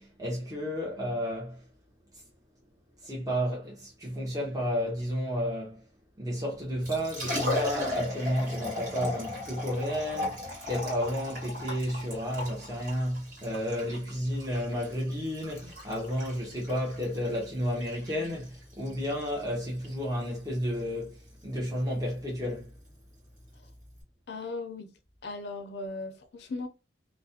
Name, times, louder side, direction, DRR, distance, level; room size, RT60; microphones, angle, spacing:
voice 1, 0.0-1.6 3.0-5.9 6.2-22.7, equal, 20° right, 0.6 m, -32 dB
Liquid, 6.6-24.0, left 2 dB, 50° right, 1.3 m, -38 dB
voice 2, 24.3-24.9 25.2-26.7, left 3 dB, 60° left, 0.4 m, -37 dB
2.4 x 2.0 x 2.7 m
head